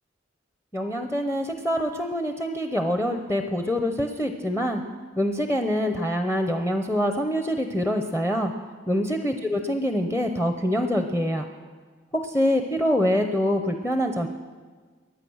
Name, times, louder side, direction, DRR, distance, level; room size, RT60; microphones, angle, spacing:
voice 1, 0.7-4.8 5.2-8.5 8.9-11.4 12.1-14.3, equal, 10° left, 5 dB, 0.8 m, -25 dB
23.0 x 9.5 x 6.4 m, 1.5 s
head